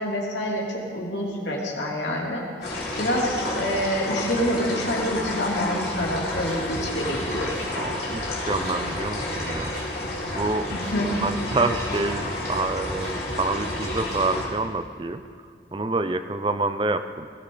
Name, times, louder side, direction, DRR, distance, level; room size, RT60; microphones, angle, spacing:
voice 1, 0.0-7.6 10.7-11.3, equal, 80° left, -2 dB, 2.9 m, -27 dB
sound 1, 2.6-14.5, left 2 dB, 60° left, 3.2 m, -30 dB
sound 2, 5.9-14.5, right 1 dB, 75° right, 5.2 m, -38 dB
voice 2, 7.7-9.7 10.4-10.7 11.2-15.2 15.7-17.3, right 3 dB, 25° right, 10 dB, 0.4 m, -27 dB
20.0 x 15.0 x 3.9 m, 2.1 s
head